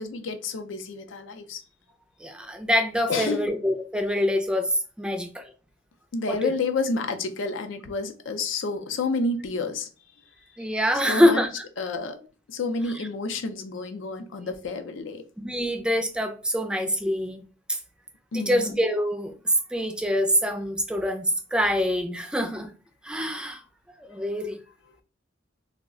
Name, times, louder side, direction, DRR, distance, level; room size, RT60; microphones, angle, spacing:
voice 1, 0.0-1.6 3.1-3.5 6.1-9.9 11.1-11.4 11.8-15.2 18.3-18.7, left 3 dB, 75° left, 0.5 m, -30 dB
voice 2, 2.2-5.5 6.3-6.5 10.6-11.6 15.4-17.4 17.7-17.8 18.3-22.7 23.0-23.6 24.0-24.6, equal, 5° right, 0.3 m, -25 dB
2.3 x 2.0 x 3.6 m
head